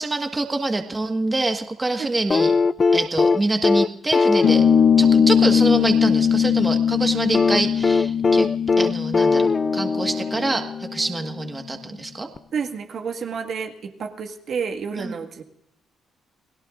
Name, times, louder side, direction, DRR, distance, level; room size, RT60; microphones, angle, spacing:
voice 1, 0.0-2.5 2.9-4.6 5.0-8.5 8.8-9.5 9.7-10.6 10.9-12.3 15.0-15.1, right 2 dB, 20° right, 5 dB, 1.6 m, -25 dB
sound 1, 2.3-6.4 7.3-10.9 12.4-12.5, left 4 dB, 35° left, 0.5 m, -21 dB
sound 2, 4.4-11.4, left 7 dB, 90° left, 1.5 m, -20 dB
voice 2, 12.5-15.4, right 6 dB, 60° right, 3 dB, 1.8 m, -30 dB
29.5 x 17.0 x 2.5 m, 0.80 s
cardioid pair, 90°, 0 cm